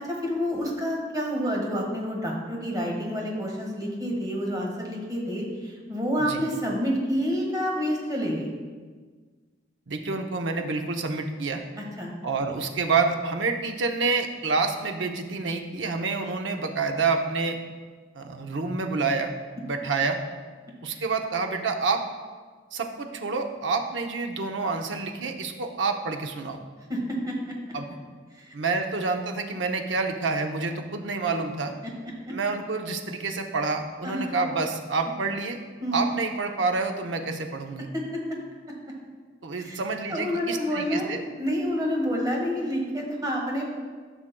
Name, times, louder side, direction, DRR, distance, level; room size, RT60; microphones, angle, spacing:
voice 1, 0.0-8.5 11.8-12.1 20.9-21.0 26.9-27.4 28.4-28.5 32.3-32.4 34.0-34.3 35.8-36.0 37.9-38.0 39.6-39.8 40.1-43.6, equal, 20° right, -1 dB, 1.6 m, -28 dB
voice 2, 9.9-11.6 12.2-17.6 18.1-19.3 19.6-20.2 20.8-22.0 22.7-26.6 27.7-27.8 28.5-31.7 32.3-35.6 35.9-37.9 39.4-41.2, right 4 dB, 80° right, 4 dB, 0.7 m, -28 dB
13.5 x 6.2 x 2.2 m, 1.5 s
head